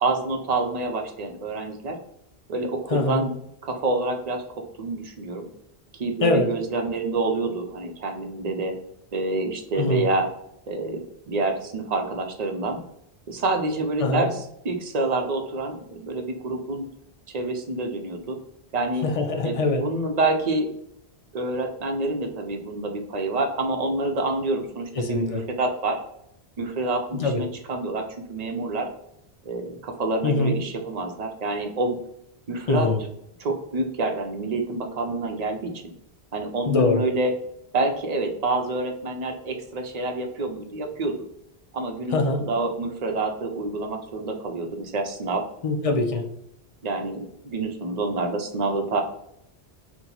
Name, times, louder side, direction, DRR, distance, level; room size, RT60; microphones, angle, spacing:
voice 1, 0.0-2.0 2.5-3.3 3.6-5.5 5.9-8.8 9.1-10.3 10.7-12.8 13.3-16.9 17.3-18.4 18.7-19.0 19.4-20.7 21.3-26.0 26.6-28.9 29.4-32.0 32.5-32.9 33.4-35.7 36.3-37.3 37.7-41.1 41.7-45.5 46.8-49.0, right 2 dB, 50° right, 4 dB, 0.5 m, -27 dB
voice 2, 2.9-3.2 6.2-6.5 9.8-10.1 14.0-14.3 19.0-19.8 25.0-25.4 27.1-27.4 30.2-30.6 32.7-33.0 36.7-37.0 42.1-42.4 45.6-46.2, left 3 dB, 60° left, 4 dB, 0.3 m, -23 dB
2.9 x 2.2 x 3.8 m, 0.77 s
omnidirectional pair, 1.1 m